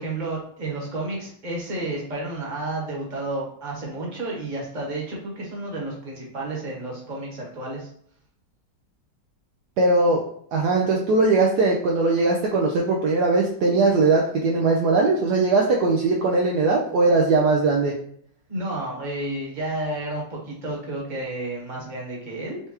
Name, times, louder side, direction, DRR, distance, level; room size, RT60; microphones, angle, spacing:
voice 1, 0.0-7.9 18.5-22.6, right 2 dB, 30° right, -3 dB, 1.3 m, -31 dB
voice 2, 9.8-10.2 10.5-17.9, right 3 dB, 70° right, -1 dB, 1.1 m, -20 dB
4.5 x 3.3 x 2.9 m, 0.65 s
omnidirectional pair, 2.0 m